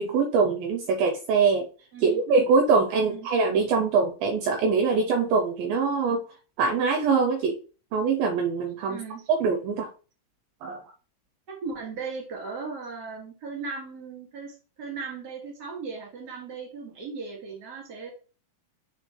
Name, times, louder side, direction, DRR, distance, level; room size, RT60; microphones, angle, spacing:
voice 1, 0.0-1.7 2.0-6.2 6.6-7.6 7.9-9.0 9.3-9.9 10.6-10.8, right 4 dB, 80° right, 4 dB, 2.2 m, -23 dB
voice 2, 8.8-9.3 11.5-18.1, right 4 dB, 30° right, 0 dB, 2.2 m, -37 dB
8.3 x 4.8 x 3.2 m, 0.36 s
omnidirectional pair, 4.7 m